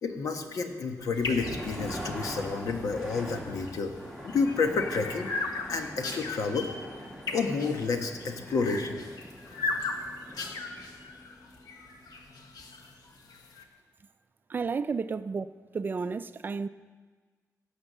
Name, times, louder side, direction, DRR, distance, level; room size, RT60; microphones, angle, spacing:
voice 1, 0.0-3.9 4.2-5.3 5.7-6.7 7.3-9.1, left 4 dB, 65° left, 1.3 m, -30 dB
sound 1, 1.0-12.8, equal, 10° left, 1.9 m, -43 dB
sound 2, 1.1-13.6, left 3 dB, 85° left, 1.4 m, -38 dB
voice 2, 14.5-15.5 15.7-16.7, right 5 dB, 30° right, 0.4 m, -31 dB
16.0 x 8.1 x 6.8 m
wide cardioid pair, 150°, 6 cm